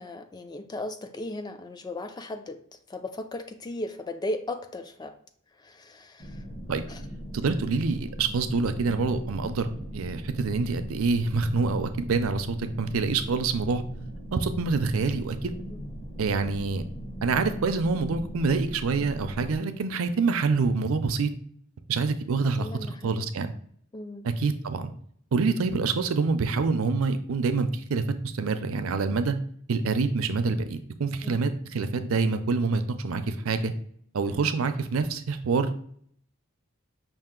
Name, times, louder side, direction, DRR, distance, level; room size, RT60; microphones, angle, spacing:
voice 1, 0.0-2.6 2.9-5.1 5.6-6.4 6.9-7.0 15.7-15.8 22.6-23.2 23.9-24.3 31.2-31.5, left 1 dB, 20° left, 8 dB, 0.3 m, -36 dB
generator failing, 6.2-19.6, equal, 35° left, 0.9 m, -39 dB
voice 2, 7.3-9.7 9.9-13.8 14.3-15.6 16.2-16.9 17.2-21.3 21.9-22.7 23.0-23.5 24.4-24.9 25.3-29.4 29.7-33.7 34.1-35.7, right 4 dB, 70° right, 10 dB, 0.5 m, -26 dB
5.5 x 2.5 x 3.7 m, 0.62 s
head